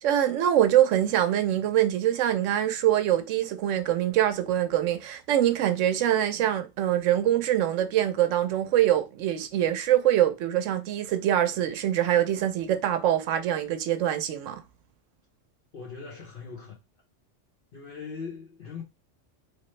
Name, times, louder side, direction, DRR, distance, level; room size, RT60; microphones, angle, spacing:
voice 1, 0.0-14.6, right 11 dB, 85° right, 0.9 m, -24 dB
voice 2, 15.7-16.8 17.7-18.8, left 5 dB, 50° left, 0.9 m, -40 dB
3.3 x 2.9 x 3.1 m
omnidirectional pair, 1.3 m